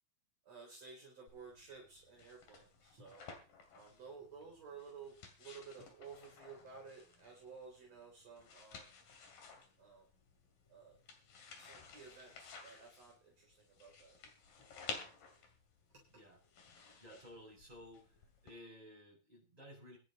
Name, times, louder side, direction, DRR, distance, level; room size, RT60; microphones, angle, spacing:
voice 1, 0.5-3.2 3.7-8.9 9.8-10.1 10.7-11.0 11.6-14.2 16.1-16.2, right 5 dB, 50° right, -2 dB, 4.5 m, -54 dB
sound 1, 1.3-18.5, left 5 dB, 85° left, 4.3 m, -54 dB
voice 2, 17.0-18.1 18.4-20.0, equal, 10° right, -2 dB, 7.5 m, -55 dB
24.0 x 11.0 x 3.0 m, 0.32 s
omnidirectional pair, 3.8 m